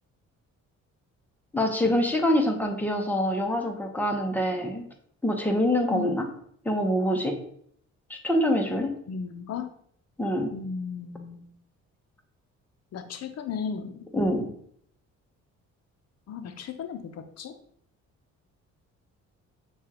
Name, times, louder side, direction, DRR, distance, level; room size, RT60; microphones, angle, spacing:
voice 1, 1.5-4.9 5.2-6.3 6.6-7.4 8.1-8.9 10.2-10.5 14.1-14.5, left 1 dB, 5° left, 3 dB, 0.8 m, -25 dB
voice 2, 9.1-9.7 10.5-11.5 12.9-14.1 16.3-17.5, left 6 dB, 55° left, 7 dB, 0.6 m, -35 dB
6.6 x 2.4 x 2.9 m, 0.65 s
cardioid pair, 90°, 30 cm